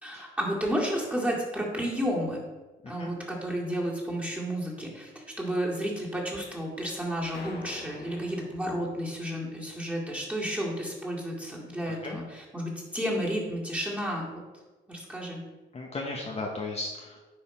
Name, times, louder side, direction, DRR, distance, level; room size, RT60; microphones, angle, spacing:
voice 1, 0.0-2.4 2.9-5.1 5.4-14.3 14.9-15.4, equal, 5° right, -4 dB, 2.2 m, -31 dB
sound 1, 7.3-9.7, left 3 dB, 55° left, 1.2 m, -47 dB
voice 2, 11.8-12.2 15.7-17.2, left 2 dB, 30° left, -1 dB, 1.0 m, -35 dB
10.0 x 3.4 x 4.4 m, 1.2 s
cardioid pair, 90°, 20 cm